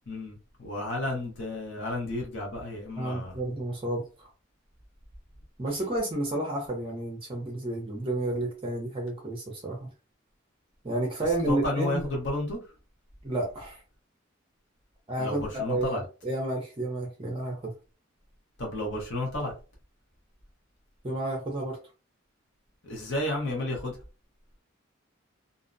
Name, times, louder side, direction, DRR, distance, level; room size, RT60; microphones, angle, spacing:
voice 1, 0.1-3.4 11.5-12.6 15.2-16.0 18.6-19.5 22.8-24.0, left 1 dB, 60° left, 0.8 m, -32 dB
voice 2, 3.0-4.3 5.6-9.9 10.8-12.0 13.2-13.8 15.1-17.7 21.0-21.8, right 1 dB, 25° right, 0.6 m, -31 dB
2.6 x 2.0 x 2.5 m
head